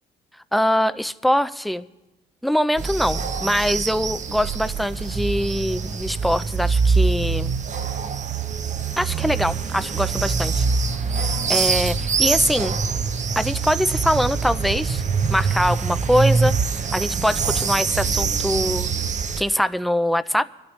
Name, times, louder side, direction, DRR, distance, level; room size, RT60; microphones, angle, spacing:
voice 1, 0.5-1.9 2.4-7.5 9.0-10.6 11.1-12.8 13.4-15.0 15.3-16.6 16.9-18.9 19.4-20.4, equal, ahead, 12 dB, 0.5 m, -23 dB
sound 1, 2.8-19.4, right 5 dB, 35° right, 0.7 m, -24 dB
25.0 x 12.0 x 3.2 m, 1.1 s
cardioid pair, 90°, 20 cm